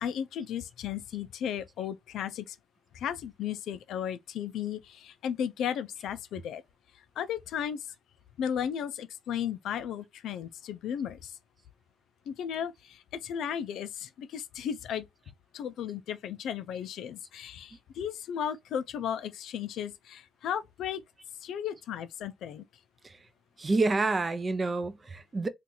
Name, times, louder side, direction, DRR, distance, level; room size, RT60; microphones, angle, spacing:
voice 1, 0.0-2.6 2.9-6.6 7.2-7.9 8.4-11.4 12.3-15.1 15.5-21.0 21.4-22.7, left 9 dB, 80° left, 0.4 m, -35 dB
voice 2, 23.6-25.5, right 3 dB, 30° right, 0.5 m, -28 dB
2.8 x 2.5 x 3.8 m
cardioid pair, 90°, 0 cm